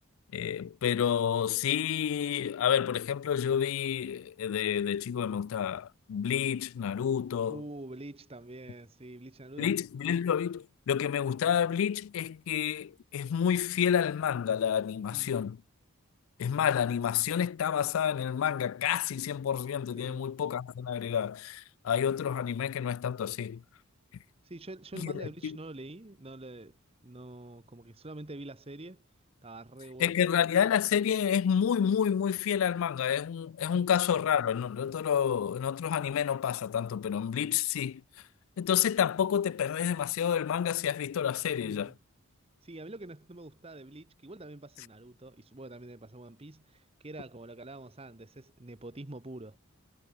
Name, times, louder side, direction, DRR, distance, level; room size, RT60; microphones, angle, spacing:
voice 1, 0.3-7.6 9.6-15.6 16.4-23.6 25.0-25.6 30.0-38.0 38.6-41.9, left 8 dB, 65° left, 0.3 m, -29 dB
voice 2, 7.5-9.8 15.1-15.3 20.0-20.2 24.4-29.0 29.4-30.3 33.7-33.9 41.6-42.0 42.6-49.6, right 2 dB, 25° right, 1.0 m, -46 dB
head